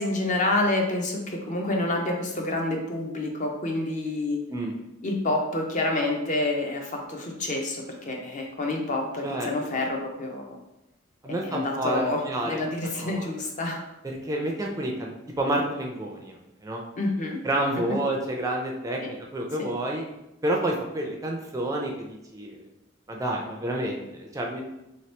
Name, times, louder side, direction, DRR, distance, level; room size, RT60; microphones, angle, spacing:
voice 1, 0.0-4.4 5.0-10.6 11.4-13.8 17.0-17.4 17.7-18.0 19.0-19.1 19.6-19.7, left 2 dB, 40° left, 2 dB, 0.5 m, -28 dB
voice 2, 11.2-12.6 13.0-13.3 14.0-16.3 16.6-16.8 17.4-20.0 20.4-22.7 23.1-24.6, right 1 dB, 15° right, 0 dB, 0.4 m, -29 dB
2.9 x 2.9 x 3.2 m, 0.90 s
head